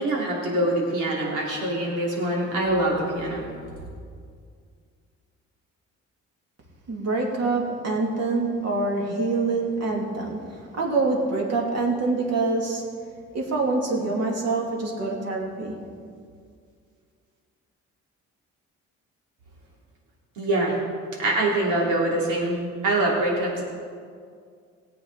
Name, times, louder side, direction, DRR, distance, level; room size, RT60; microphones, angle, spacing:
voice 1, 0.0-3.5 20.4-20.7 21.2-23.7, right 1 dB, 90° right, -3 dB, 3.1 m, -24 dB
voice 2, 6.9-12.8 13.3-15.8, right 3 dB, 55° right, -1 dB, 2.8 m, -25 dB
18.0 x 8.2 x 4.1 m, 2.2 s
cardioid pair, 90°, 30 cm